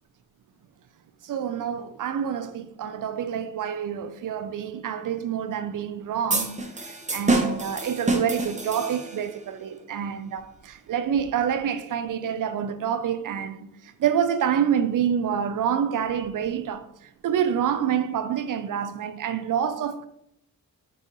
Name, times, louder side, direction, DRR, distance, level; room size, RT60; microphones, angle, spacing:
voice 1, 1.2-13.7 14.0-16.9 17.2-20.1, right 8 dB, 60° right, 0.5 m, -27 dB
sound 1, 6.3-9.4, right 2 dB, 20° right, 0.8 m, -27 dB
4.7 x 2.5 x 4.0 m
cardioid pair, 65°, 37 cm